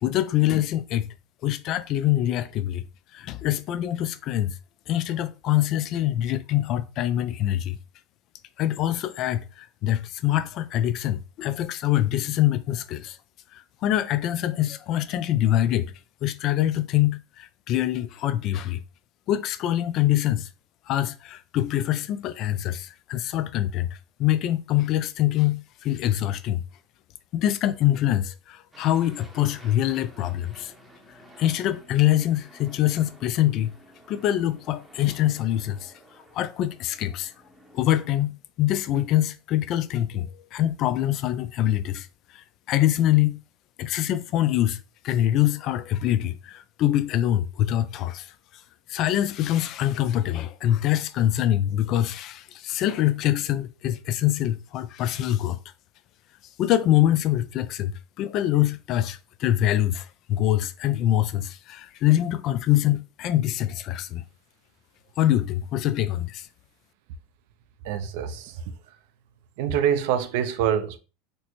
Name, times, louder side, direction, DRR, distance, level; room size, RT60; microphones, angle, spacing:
voice 1, 0.0-1.1 1.4-2.8 3.1-4.6 4.9-7.8 8.6-13.2 13.5-15.9 16.2-18.8 19.3-20.5 20.9-26.6 27.3-30.7 31.4-33.7 34.1-35.9 36.3-37.3 37.7-42.1 42.3-43.4 43.8-44.8 45.0-48.3 48.9-55.6 56.6-64.2 65.2-66.5, left 13 dB, 45° left, 0.3 m, -24 dB
Aircraft, 28.7-38.2, equal, 5° right, 0.7 m, -52 dB
voice 2, 67.8-69.0 69.6-71.0, right 9 dB, 70° right, 0.4 m, -26 dB
4.2 x 2.1 x 2.9 m
supercardioid pair, 125°, 0 cm